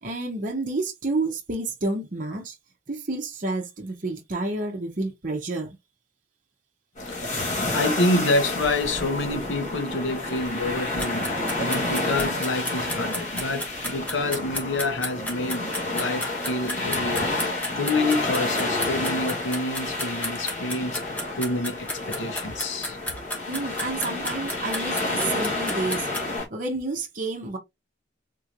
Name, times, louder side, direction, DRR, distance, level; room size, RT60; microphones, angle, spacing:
voice 1, 0.0-2.5 2.9-5.8 23.5-26.1 26.5-27.6, right 2 dB, 45° right, 0.8 m, -30 dB
voice 2, 7.0-23.0, left 2 dB, 75° left, 0.9 m, -28 dB
sound 1, 7.0-26.5, left 2 dB, 40° left, 1.4 m, -30 dB
Kitchen Egg Timer, 11.0-26.4, left 1 dB, 10° left, 0.9 m, -32 dB
3.7 x 3.1 x 2.5 m
head